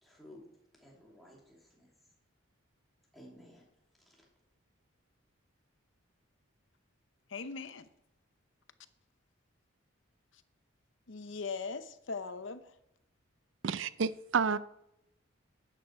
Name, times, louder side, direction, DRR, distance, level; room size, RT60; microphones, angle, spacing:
voice 1, 0.0-0.5 0.8-1.9 3.1-3.6 4.0-4.2, left 1 dB, ahead, -3 dB, 2.8 m, -55 dB
voice 2, 7.3-7.9 11.1-12.7, left 4 dB, 60° left, 11 dB, 0.8 m, -40 dB
voice 3, 13.6-14.6, right 5 dB, 60° right, 16 dB, 0.5 m, -30 dB
12.0 x 9.2 x 4.7 m, 0.81 s
head